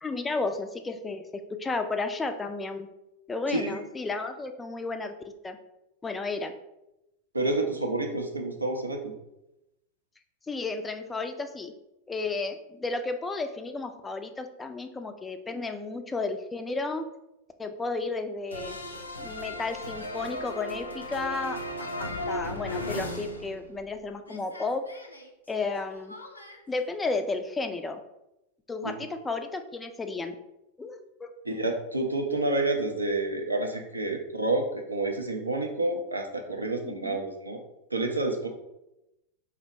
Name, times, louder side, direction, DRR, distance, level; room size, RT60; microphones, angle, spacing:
voice 1, 0.0-2.9 3.3-5.1 5.4-5.6 6.0-6.5 10.5-11.7 12.1-17.0 17.6-18.8 19.2-24.8 25.5-26.1 26.7-28.0 28.7-30.4 30.8-31.3 36.8-37.2, left 3 dB, 15° left, 7 dB, 0.3 m, -33 dB
voice 2, 3.5-3.8 7.3-9.1 28.8-28.9 31.5-37.6 37.9-38.5, right 2 dB, 80° right, 3 dB, 0.6 m, -29 dB
sound 1, 18.5-24.0 24.2-26.6, left 1 dB, 80° left, 0.5 m, -37 dB
3.9 x 2.1 x 4.3 m, 0.91 s
figure-of-eight pair, 90°, 0 cm